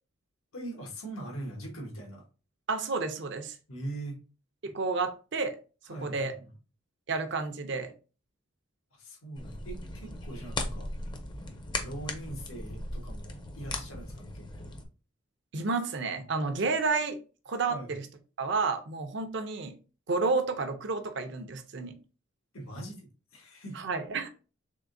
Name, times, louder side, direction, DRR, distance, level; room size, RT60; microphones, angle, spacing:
voice 1, 0.5-2.2 3.7-4.2 5.9-6.5 8.9-10.9 11.8-14.8 16.2-16.3 17.7-18.0 22.5-23.8, right 1 dB, 90° left, 0 dB, 1.3 m, -42 dB
voice 2, 2.7-3.6 4.6-5.6 6.0-6.3 7.1-7.9 15.5-17.2 17.5-18.0 18.4-19.7 20.1-21.9 23.7-24.3, right 4 dB, 55° right, 7 dB, 0.5 m, -30 dB
sound 1, 9.4-14.9, left 2 dB, 20° left, 0.5 m, -38 dB
3.6 x 3.5 x 2.6 m, 0.34 s
head